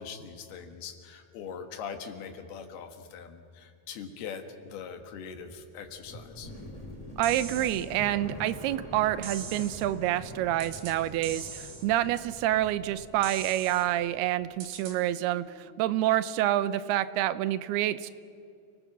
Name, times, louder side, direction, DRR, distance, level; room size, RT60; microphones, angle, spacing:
voice 1, 0.0-6.5, left 6 dB, 80° left, 6 dB, 3.4 m, -42 dB
sound 1, 4.6-14.7 15.0-15.8, left 1 dB, 15° left, 1.4 m, -46 dB
sound 2, 7.2-7.9 9.2-9.9 10.6-11.0 11.2-11.9 13.2-13.9 14.6-15.0, right 6 dB, 70° right, 4.2 m, -41 dB
voice 2, 7.2-18.1, right 13 dB, 85° right, 14 dB, 2.7 m, -28 dB
29.0 x 19.5 x 6.1 m, 2.4 s
omnidirectional pair, 4.5 m